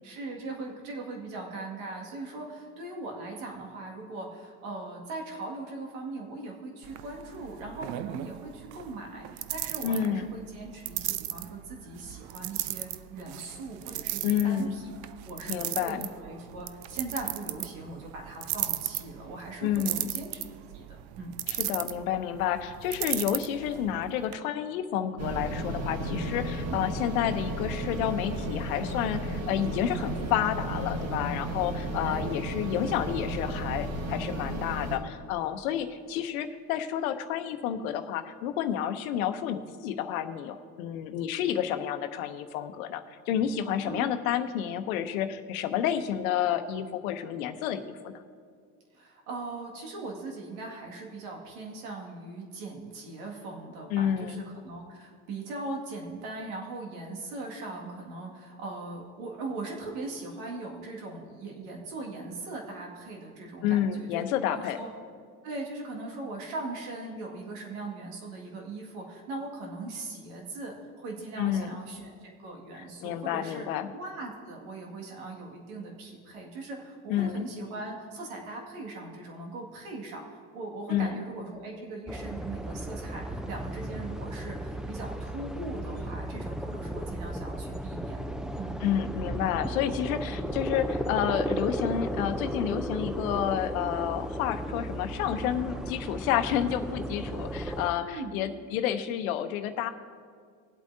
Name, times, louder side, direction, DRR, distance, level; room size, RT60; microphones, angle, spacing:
voice 1, 0.0-14.9 15.3-20.4 20.7-21.4 26.7-26.8 32.0-32.2 43.8-44.1 48.9-64.9 65.4-73.7 73.9-88.9 98.0-98.4, right 2 dB, 80° right, 0 dB, 2.0 m, -40 dB
sound 1, 6.8-24.4, right 15 dB, 65° right, 0.6 m, -37 dB
voice 2, 9.8-10.3 14.2-14.8 15.5-16.1 19.6-20.1 21.5-48.2 53.9-54.4 63.6-64.8 71.4-71.8 72.7-73.9 77.1-77.5 80.9-81.2 88.8-99.9, left 10 dB, 80° left, 10 dB, 0.8 m, -30 dB
sound 2, 25.2-35.0, right 1 dB, 35° right, 1.7 m, -33 dB
sound 3, 82.1-97.9, right 1 dB, ahead, 0.5 m, -35 dB
20.0 x 8.2 x 2.7 m, 2.1 s
hypercardioid pair, 70°, 42 cm